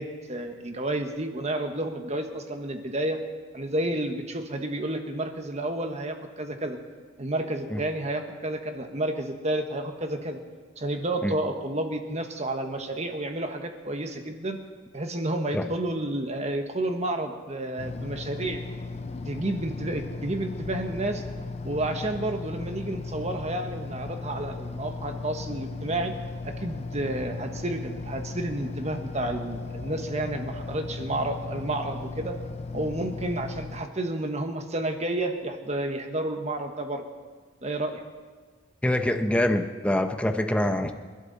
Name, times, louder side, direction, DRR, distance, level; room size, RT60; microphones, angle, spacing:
voice 1, 0.0-3.2 3.5-6.8 7.2-10.4 10.8-14.6 14.9-18.6 19.2-21.2 21.6-26.1 26.4-32.4 32.7-37.0 37.6-38.0, right 1 dB, 35° right, 5 dB, 1.4 m, -30 dB
sound 1, 17.8-33.9, left 3 dB, 35° left, 0.7 m, -36 dB
voice 2, 38.8-40.9, left 1 dB, 5° left, 6 dB, 0.9 m, -25 dB
29.0 x 12.0 x 4.2 m, 1.5 s
head